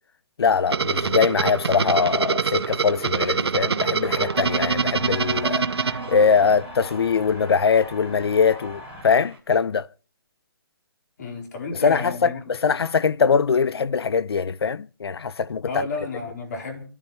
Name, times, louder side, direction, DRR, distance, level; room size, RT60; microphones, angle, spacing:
voice 1, 0.4-5.6 6.1-9.9 11.7-15.9, left 6 dB, 75° left, 0.7 m, -22 dB
sound 1, 0.7-6.7, right 5 dB, 90° right, 0.9 m, -25 dB
sound 2, 1.9-9.4, right 5 dB, 10° right, 3.6 m, -51 dB
sound 3, 4.0-9.0, left 2 dB, 15° left, 1.6 m, -40 dB
voice 2, 11.2-12.4 15.7-16.8, left 3 dB, 45° left, 4.3 m, -31 dB
28.5 x 12.0 x 3.2 m
hypercardioid pair, 165°, 13 cm